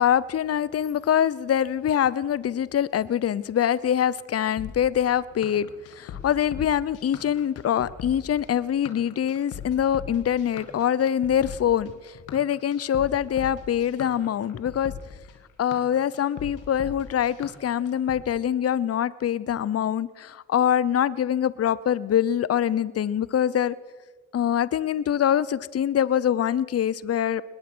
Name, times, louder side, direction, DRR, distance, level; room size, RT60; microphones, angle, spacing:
voice 1, 0.0-14.9 15.6-23.7 24.3-27.4, left 9 dB, 50° left, 19 dB, 0.8 m, -24 dB
sound 1, 4.6-18.2, left 8 dB, 80° left, 2.6 m, -40 dB
21.5 x 20.5 x 6.2 m, 1.3 s
hypercardioid pair, 45°, 31 cm